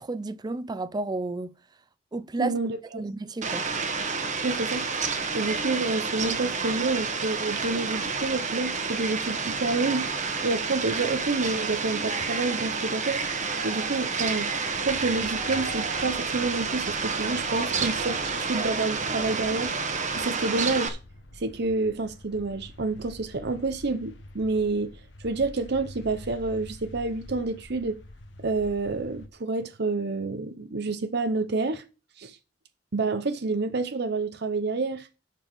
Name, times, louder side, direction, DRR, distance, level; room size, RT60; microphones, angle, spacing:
voice 1, 0.0-1.5 2.1-2.5 2.9-3.6, right 2 dB, 20° right, 0.4 m, -32 dB
voice 2, 2.4-3.1 4.4-4.8 5.3-10.1 10.4-13.2 13.6-14.5 14.8-19.7 20.2-21.0 21.3-28.0 28.4-31.8 32.2-32.4 32.9-35.1, right 3 dB, 60° right, 0.8 m, -28 dB
Fowl, 3.4-20.9, right 4 dB, 40° right, 1.3 m, -29 dB
sound 1, 14.6-29.3, left 1 dB, 75° left, 1.4 m, -47 dB
13.5 x 4.7 x 5.3 m
head